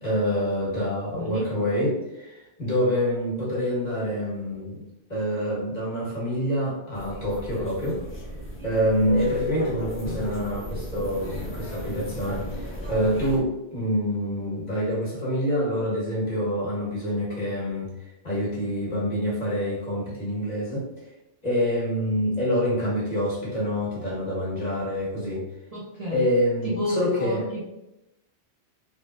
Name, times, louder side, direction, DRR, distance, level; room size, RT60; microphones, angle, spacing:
voice 1, 0.0-4.8 5.1-8.0 8.6-20.9 21.4-25.4 26.1-27.4, equal, 40° left, -7 dB, 1.6 m, -26 dB
voice 2, 1.1-1.5 25.7-26.3 26.6-27.6, left 1 dB, 40° right, -7 dB, 0.7 m, -31 dB
sound 1, 6.9-13.4, left 1 dB, 15° left, 0.6 m, -34 dB
3.5 x 2.3 x 3.8 m, 0.91 s
omnidirectional pair, 1.1 m